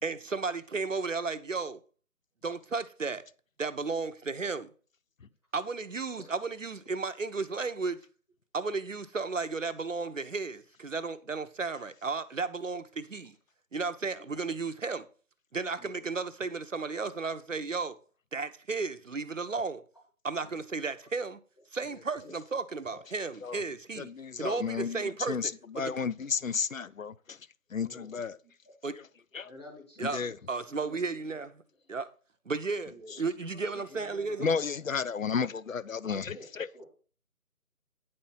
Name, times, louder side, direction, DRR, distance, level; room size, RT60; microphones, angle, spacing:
voice 1, 0.0-1.8 2.4-3.2 3.6-4.7 5.5-8.0 8.5-13.3 13.7-15.1 15.5-18.0 18.3-19.8 20.2-21.4 21.7-24.1 24.4-25.9 28.8-29.0 30.0-31.6 31.9-32.1 32.5-34.6, right 4 dB, 60° right, 0.8 m, -34 dB
voice 2, 24.0-27.4 27.7-28.4 29.3-29.5 30.0-30.4 34.4-36.8, left 6 dB, 60° left, 0.5 m, -33 dB
voice 3, 28.4-28.7 29.4-30.3 30.6-31.0 32.9-33.2 33.8-34.5 36.1-36.8, left 1 dB, 20° left, 1.8 m, -51 dB
9.4 x 4.4 x 5.5 m
figure-of-eight pair, 175°, 45 cm